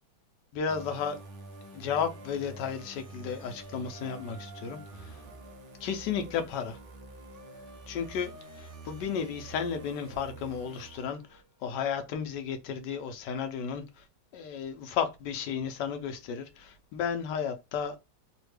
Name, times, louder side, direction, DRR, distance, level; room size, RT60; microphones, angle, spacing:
voice 1, 0.5-1.2 1.7-5.2 5.8-6.8 7.9-14.1 14.3-18.0, left 7 dB, 80° left, 1.3 m, -33 dB
sound 1, 0.7-11.5, right 2 dB, 55° right, 0.6 m, -47 dB
3.4 x 2.2 x 3.1 m
omnidirectional pair, 1.9 m